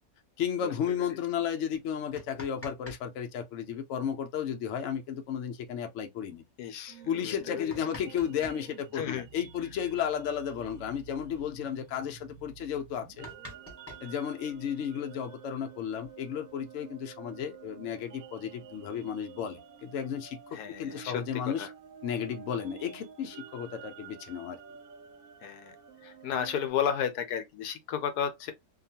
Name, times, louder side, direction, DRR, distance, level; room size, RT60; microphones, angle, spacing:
voice 1, 0.4-6.4 7.1-13.3 14.0-21.7 22.0-24.6, left 8 dB, 65° left, 0.8 m, -33 dB
sound 1, 2.1-3.0 3.3-3.4 5.1-5.2 5.6-5.7 6.3-6.4 7.2-8.6 10.2-10.3 10.5-10.8 11.1-11.5 12.0-12.1 12.5-12.6 12.9-14.8 15.7-16.5, left 1 dB, 20° left, 0.4 m, -48 dB
voice 2, 6.6-7.7 8.9-9.3 20.5-21.7 25.4-25.8 26.0-28.5, left 8 dB, 80° left, 1.1 m, -33 dB
sound 2, 6.9-26.7, right 8 dB, 70° right, 0.9 m, -50 dB
2.8 x 2.3 x 2.7 m
omnidirectional pair, 1.7 m